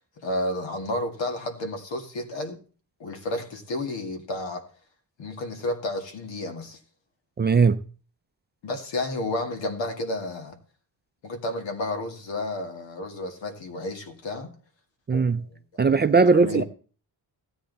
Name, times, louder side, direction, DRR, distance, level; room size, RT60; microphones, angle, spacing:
voice 1, 0.2-2.6 3.0-4.6 5.2-6.8 8.6-10.6 11.2-14.5 15.1-15.8 16.3-16.6, left 1 dB, 90° left, 2.2 m, -31 dB
voice 2, 7.4-7.8 15.1-15.4 15.8-16.6, right 4 dB, 25° right, 0.5 m, -19 dB
15.5 x 8.6 x 4.1 m
wide cardioid pair, 140°, 43 cm